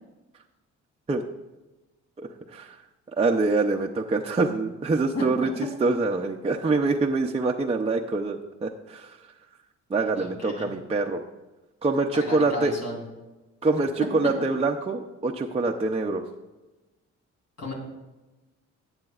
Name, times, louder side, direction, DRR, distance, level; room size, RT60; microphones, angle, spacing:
voice 1, 2.2-2.8 3.1-5.5 5.8-9.2 9.9-11.2 11.8-12.7 13.6-16.2, right 3 dB, 20° right, 1 dB, 0.6 m, -25 dB
voice 2, 5.1-5.7 10.1-10.7 12.1-13.0 14.2-14.3 17.6-17.7, left 1 dB, 55° left, -1 dB, 3.5 m, -33 dB
14.5 x 8.9 x 2.4 m, 1.1 s
cardioid pair, 90°, 30 cm